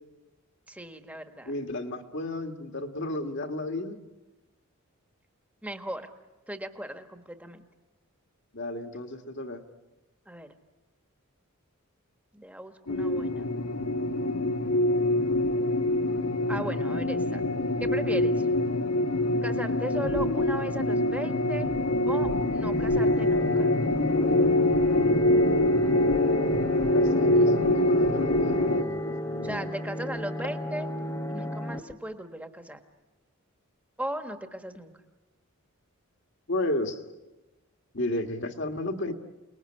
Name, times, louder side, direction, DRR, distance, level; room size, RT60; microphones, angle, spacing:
voice 1, 0.7-1.6 5.6-6.1 6.5-7.7 10.3-10.5 12.3-13.5 16.5-17.4 17.8-18.5 19.4-21.7 22.0-23.7 29.4-30.9 31.3-32.8 34.0-34.9, right 1 dB, 5° right, 7 dB, 1.4 m, -37 dB
voice 2, 1.5-4.0 8.5-9.6 26.9-29.7 36.5-37.0 37.9-39.1, left 1 dB, 55° left, 6 dB, 1.8 m, -33 dB
sound 1, 12.9-28.8, left 1 dB, 80° left, 1.6 m, -25 dB
sound 2, 22.2-31.8, left 1 dB, 10° left, 1.0 m, -34 dB
28.5 x 20.0 x 9.9 m, 1.1 s
head